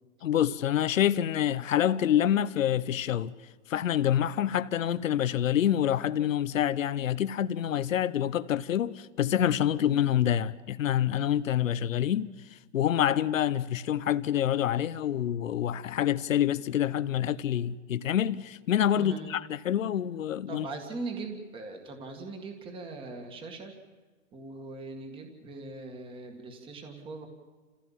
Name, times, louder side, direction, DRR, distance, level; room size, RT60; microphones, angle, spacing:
voice 1, 0.2-3.3 3.7-20.7, left 10 dB, 80° left, 0.8 m, -27 dB
voice 2, 18.9-19.5 20.5-23.7 24.3-27.3, right 3 dB, 15° right, 1.9 m, -40 dB
28.0 x 16.0 x 7.4 m
hypercardioid pair, 150°, 38 cm